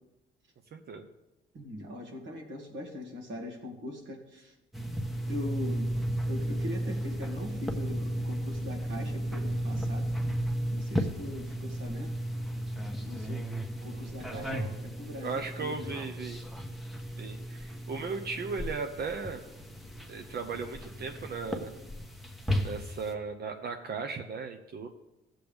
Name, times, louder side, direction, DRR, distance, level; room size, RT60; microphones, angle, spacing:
voice 1, 0.7-1.1 13.9-14.8 15.2-16.4 17.2-19.4 20.1-21.7 22.6-24.9, right 4 dB, 55° right, 5 dB, 0.8 m, -37 dB
voice 2, 1.5-4.5 5.3-5.9 6.3-10.1 10.7-12.2 13.0-15.9, left 1 dB, 70° right, 2 dB, 2.1 m, -41 dB
sound 1, 4.7-23.1, equal, ahead, 1.1 m, -34 dB
15.0 x 7.6 x 3.5 m, 0.98 s
cardioid pair, 90°, 20 cm